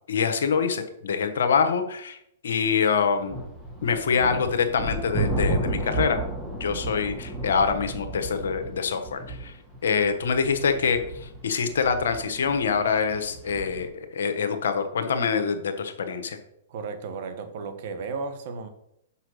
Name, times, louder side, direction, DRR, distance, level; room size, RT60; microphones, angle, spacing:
voice 1, 0.1-2.2 2.4-3.4 3.8-6.2 6.5-9.6 9.8-16.4, left 6 dB, 75° left, 8 dB, 1.2 m, -25 dB
sound 1, 3.2-13.9, right 2 dB, 5° right, 2.3 m, -33 dB
voice 2, 16.7-18.7, right 4 dB, 55° right, 8 dB, 1.3 m, -34 dB
5.8 x 5.6 x 6.3 m, 0.77 s
hypercardioid pair, 125°, 0 cm